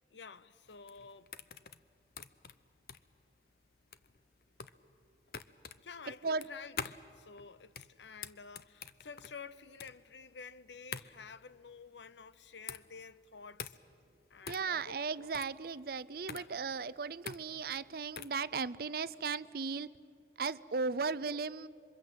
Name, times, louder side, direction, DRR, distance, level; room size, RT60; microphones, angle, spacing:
voice 1, 0.1-1.3 5.8-13.8 14.3-15.3 16.3-16.5, left 5 dB, 85° left, 0.8 m, -51 dB
sound 1, 0.7-18.4, left 6 dB, 55° left, 0.7 m, -47 dB
voice 2, 14.5-19.9 20.4-21.7, right 4 dB, 55° right, 0.6 m, -36 dB
27.5 x 24.0 x 8.0 m
head